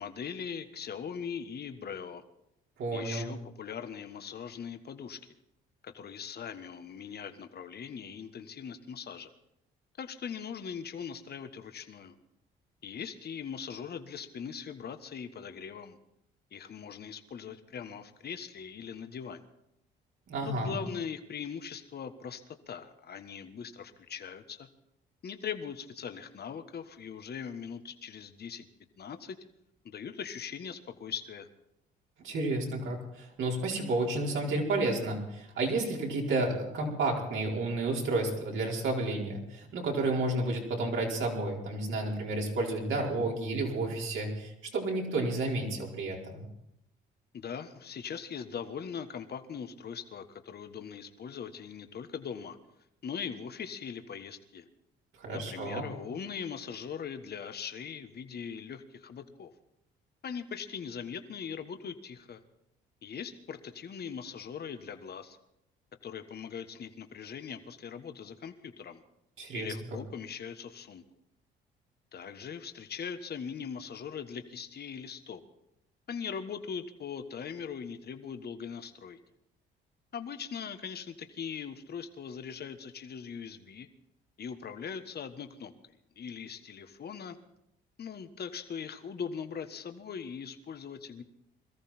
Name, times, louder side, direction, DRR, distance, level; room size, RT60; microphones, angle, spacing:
voice 1, 0.0-2.2 2.9-5.3 5.8-9.3 10.0-12.1 12.8-16.0 16.5-19.4 20.5-24.7 25.2-28.7 29.0-29.4 29.8-31.5 47.3-52.6 53.0-54.7 55.3-59.5 60.2-62.4 63.0-65.4 66.0-69.0 69.5-71.0 72.1-75.4 76.1-79.2 80.1-83.9 84.4-85.7 86.2-87.4 88.0-91.2, left 7 dB, 50° left, 8 dB, 1.4 m, -40 dB
voice 2, 2.8-3.3 20.3-20.8 32.2-46.4 55.2-55.9 69.4-69.7, right 2 dB, 70° right, -1 dB, 4.7 m, -31 dB
22.0 x 14.0 x 4.4 m, 0.82 s
supercardioid pair, 70°, 21 cm